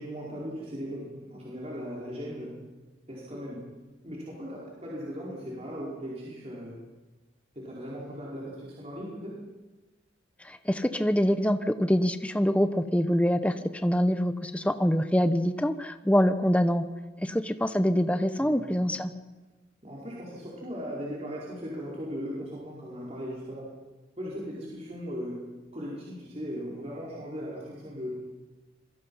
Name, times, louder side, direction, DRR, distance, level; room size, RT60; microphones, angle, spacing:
voice 1, 0.0-2.6 3.1-3.8 4.0-6.8 7.5-9.5 18.3-18.6 19.8-23.8 24.2-28.1, equal, 35° right, -6 dB, 4.9 m, -38 dB
voice 2, 10.4-16.8 17.2-19.1, equal, 5° left, 9 dB, 1.0 m, -25 dB
27.5 x 23.0 x 5.6 m, 1.2 s
head